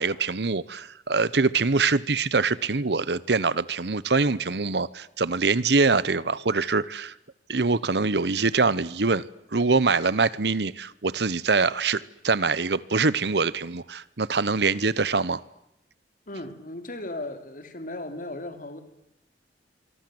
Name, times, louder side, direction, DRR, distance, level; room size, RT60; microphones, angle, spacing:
voice 1, 0.0-7.1 7.5-9.2 9.5-15.4, right 4 dB, 70° right, 19 dB, 1.0 m, -24 dB
voice 2, 16.3-18.8, left 2 dB, 50° left, 8 dB, 3.5 m, -36 dB
26.0 x 24.5 x 7.9 m, 0.83 s
head